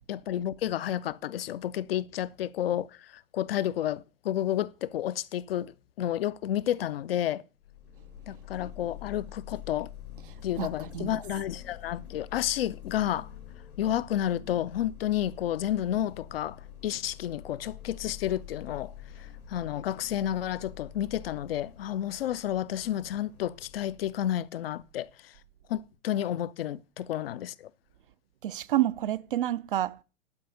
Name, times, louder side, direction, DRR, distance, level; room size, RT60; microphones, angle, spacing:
voice 1, 0.1-7.4 8.3-9.9 10.4-13.3 13.8-16.6 16.8-18.9 19.2-25.3 25.7-27.7, left 11 dB, 45° left, 0.5 m, -31 dB
sound 1, 7.6-24.2, left 10 dB, 85° left, 1.7 m, -46 dB
voice 2, 10.3-11.2 28.4-30.0, right 13 dB, 40° right, 0.4 m, -29 dB
11.5 x 4.8 x 6.5 m
figure-of-eight pair, 105°, 42 cm